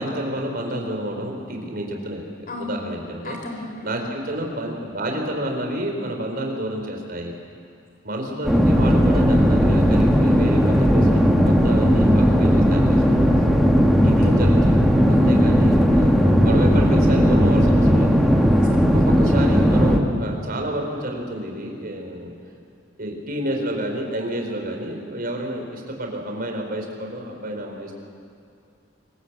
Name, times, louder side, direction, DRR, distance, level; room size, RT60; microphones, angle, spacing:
voice 1, 0.0-3.4 3.8-7.3 8.0-13.1 14.0-18.1 18.9-22.3 23.0-28.0, right 1 dB, 50° right, 2 dB, 4.5 m, -30 dB
voice 2, 2.5-2.9 3.2-3.8 14.0-14.5 15.1-15.6 18.5-18.9 19.2-19.3, left 2 dB, 50° left, 2 dB, 4.7 m, -33 dB
sound 1, 8.4-20.0, equal, ahead, 1.9 m, -16 dB
26.0 x 21.5 x 8.2 m, 2.4 s
head